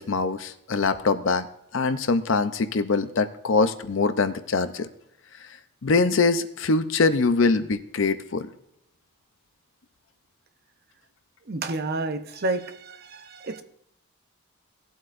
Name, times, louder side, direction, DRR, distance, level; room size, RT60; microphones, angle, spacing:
voice 1, 0.0-1.5 1.7-4.9 5.8-8.5, left 3 dB, 60° left, 11 dB, 0.6 m, -23 dB
voice 2, 11.5-13.6, right 2 dB, 45° right, 8 dB, 0.7 m, -30 dB
17.5 x 8.0 x 2.6 m, 0.81 s
head